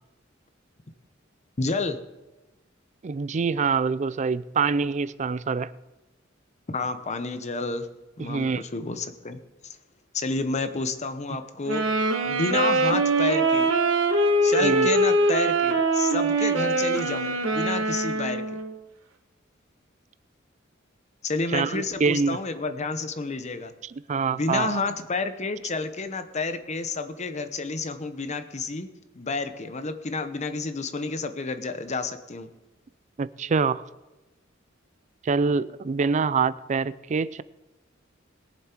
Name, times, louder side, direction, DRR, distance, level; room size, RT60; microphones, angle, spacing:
voice 1, 1.6-2.0 6.7-7.9 8.2-9.4 10.1-11.8 12.2-13.7 14.4-18.4 21.2-23.7 24.3-28.9 29.1-32.5, left 3 dB, 35° left, 9 dB, 0.9 m, -30 dB
voice 2, 3.0-5.7 8.2-8.6 14.6-14.9 21.5-22.4 23.8-24.8 33.2-33.9 35.2-37.4, right 5 dB, 35° right, 17 dB, 0.4 m, -25 dB
sound 1, 11.7-18.7, right 2 dB, 85° right, 1.5 m, -23 dB
21.0 x 7.4 x 4.5 m, 1.0 s
head